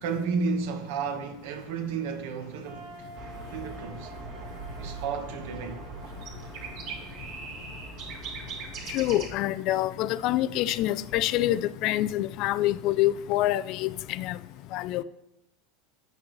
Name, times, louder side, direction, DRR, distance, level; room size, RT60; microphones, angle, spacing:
voice 1, 0.0-3.1 3.5-4.1 4.8-5.8, right 5 dB, 55° right, 1.1 m, -32 dB
sound 1, 2.6-8.6, right 2 dB, 75° right, 1.4 m, -49 dB
sound 2, 3.1-9.3, right 4 dB, 35° right, 1.8 m, -40 dB
voice 2, 8.9-14.3 14.7-15.0, left 14 dB, 40° left, 0.3 m, -26 dB
10.0 x 8.5 x 3.1 m
supercardioid pair, 175°, 0 cm